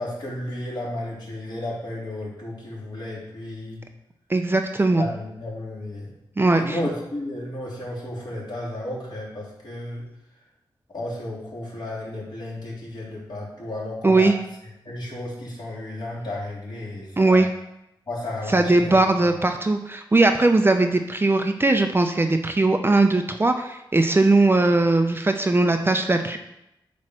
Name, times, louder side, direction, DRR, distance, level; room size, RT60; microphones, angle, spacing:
voice 1, 0.0-3.8 5.0-6.1 6.5-10.0 10.9-14.3 14.8-17.4 18.1-19.0, left 1 dB, 50° left, -5 dB, 3.1 m, -33 dB
voice 2, 4.3-5.1 6.4-6.8 14.0-14.3 17.2-17.5 18.5-26.4, right 2 dB, 25° right, 6 dB, 0.5 m, -19 dB
8.6 x 3.2 x 6.2 m, 0.84 s
wide cardioid pair, 80°, 9 cm